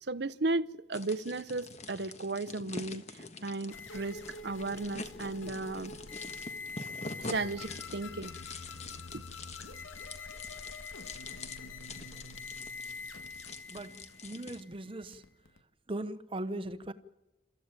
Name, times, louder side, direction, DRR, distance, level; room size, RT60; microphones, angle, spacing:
voice 1, 0.0-5.9 7.3-8.3 9.1-9.2, right 2 dB, 55° right, 0.7 m, -35 dB
sound 1, 0.9-14.6, left 3 dB, 35° left, 1.5 m, -46 dB
sound 2, 3.7-15.6, left 3 dB, 90° left, 1.6 m, -45 dB
voice 2, 13.7-15.2 15.9-16.9, right 1 dB, 25° right, 0.9 m, -39 dB
29.5 x 14.5 x 8.9 m
head